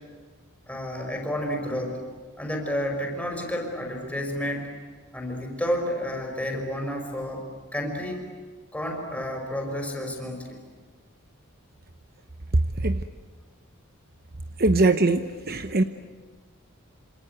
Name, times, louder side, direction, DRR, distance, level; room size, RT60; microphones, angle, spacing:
voice 1, 0.7-2.0 2.4-4.7 5.1-7.4 7.7-8.2 8.7-10.6, equal, 5° left, 2 dB, 5.3 m, -30 dB
voice 2, 14.6-15.8, right 2 dB, 45° right, 8 dB, 0.9 m, -21 dB
27.5 x 26.5 x 8.1 m, 1.4 s
head